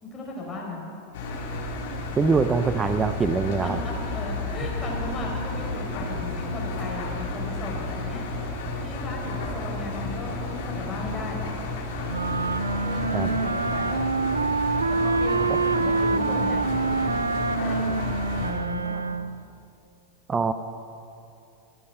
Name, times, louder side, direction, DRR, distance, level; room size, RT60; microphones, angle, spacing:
voice 1, 0.0-0.8 3.6-8.3 8.8-11.4 12.7-14.1 14.9-18.0 18.4-19.1, left 2 dB, 15° left, -2 dB, 4.5 m, -36 dB
Engine, 1.1-18.5, left 2 dB, 55° left, 3.1 m, -32 dB
voice 2, 2.2-3.8 13.1-13.3 20.3-20.5, right 4 dB, 15° right, 11 dB, 0.6 m, -23 dB
sound 1, 12.1-19.4, right 4 dB, 80° right, 0.4 m, -26 dB
24.0 x 8.6 x 5.7 m, 2.6 s
figure-of-eight pair, 90°, 0 cm